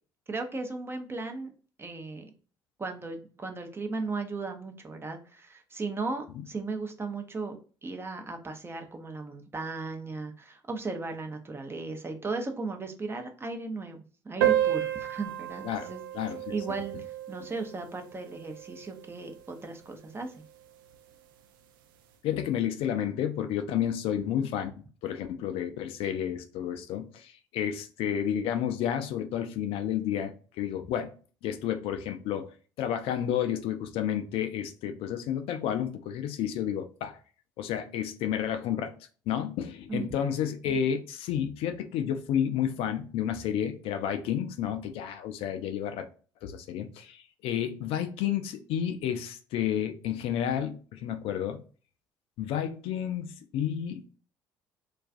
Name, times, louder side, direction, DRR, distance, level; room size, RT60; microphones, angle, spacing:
voice 1, 0.3-1.5 1.8-2.3 2.8-14.0 14.2-16.0 16.5-20.3 39.9-40.3, right 3 dB, 20° right, 0.6 m, -36 dB
sound 1, 14.4-19.4, right 12 dB, 75° right, 0.4 m, -31 dB
voice 2, 22.2-24.7 25.0-31.1 31.4-32.5 32.8-37.2 37.6-39.0 39.3-46.1 46.4-51.6 52.4-54.0, left 9 dB, 55° left, 0.4 m, -31 dB
2.4 x 2.3 x 2.4 m
hypercardioid pair, 55°, 11 cm